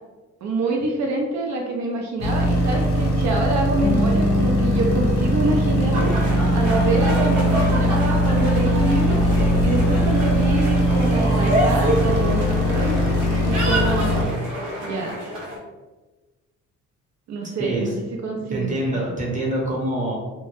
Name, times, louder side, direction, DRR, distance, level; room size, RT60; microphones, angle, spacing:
voice 1, 0.4-6.1 6.5-9.2 9.6-13.0 13.4-14.3 14.8-15.2 17.3-18.8, right 2 dB, 65° right, 0 dB, 0.5 m, -26 dB
sound 1, 2.2-14.2, equal, 65° left, 0.7 m, -20 dB
Bass guitar, 3.8-10.1, left 1 dB, 30° left, 0.5 m, -29 dB
sound 2, 5.9-15.6, right 1 dB, 90° right, 0.9 m, -27 dB
voice 2, 18.5-20.1, right 1 dB, 25° right, -3 dB, 0.8 m, -25 dB
2.1 x 2.0 x 2.9 m, 1.2 s
cardioid pair, 90°, 30 cm